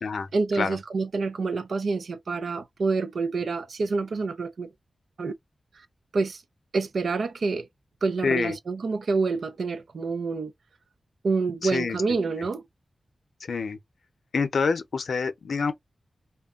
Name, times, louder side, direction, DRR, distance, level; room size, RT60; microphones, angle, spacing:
voice 1, 0.3-4.7 5.2-5.3 6.1-6.4 6.7-7.7 8.0-10.5 11.2-12.6, right 4 dB, 70° right, 0.5 m, -27 dB
voice 2, 8.2-8.6 11.6-12.0 13.5-13.8 14.3-15.7, left 5 dB, 80° left, 0.6 m, -26 dB
2.2 x 2.1 x 3.5 m
wide cardioid pair, 135°, 0 cm